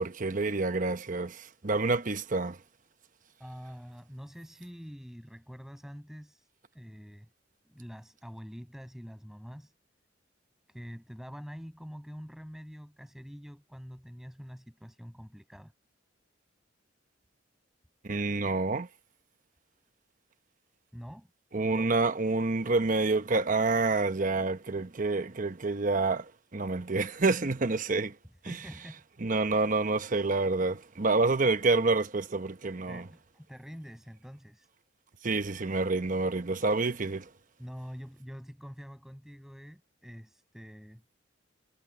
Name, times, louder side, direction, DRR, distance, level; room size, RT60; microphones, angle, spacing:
voice 1, 0.0-2.6 18.0-18.9 21.5-28.1 28.5-28.6 29.2-33.0 35.2-37.3, right 3 dB, 45° right, 0.9 m, -28 dB
voice 2, 3.4-7.3 7.7-9.7 10.7-15.7 20.9-21.3 28.4-29.0 32.9-34.7 37.6-41.0, equal, ahead, 6.7 m, -46 dB
head